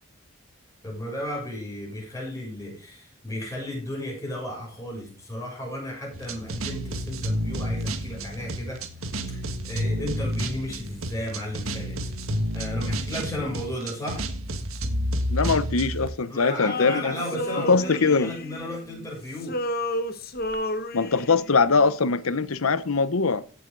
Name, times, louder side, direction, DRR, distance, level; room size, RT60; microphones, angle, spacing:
voice 1, 0.8-8.8 9.6-14.3 16.3-19.6, left 1 dB, 15° left, 7.1 m, -34 dB
sound 1, 6.1-16.1, equal, 80° right, 1.6 m, -30 dB
voice 2, 15.3-17.2 17.7-18.3 20.9-23.4, left 4 dB, 85° left, 0.9 m, -22 dB
Male singing, 16.6-19.1 19.4-21.5, left 1 dB, 45° left, 1.1 m, -31 dB
16.0 x 7.9 x 3.9 m
head